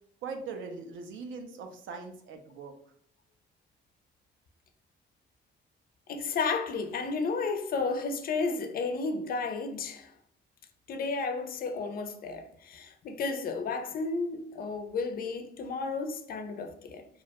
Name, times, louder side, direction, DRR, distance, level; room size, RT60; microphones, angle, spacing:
voice 1, 0.2-2.7, right 4 dB, 75° right, 0.4 m, -40 dB
voice 2, 6.1-10.1 10.9-17.1, left 4 dB, 50° left, 0.4 m, -32 dB
2.4 x 2.0 x 2.8 m
cardioid pair, 90°, 20 cm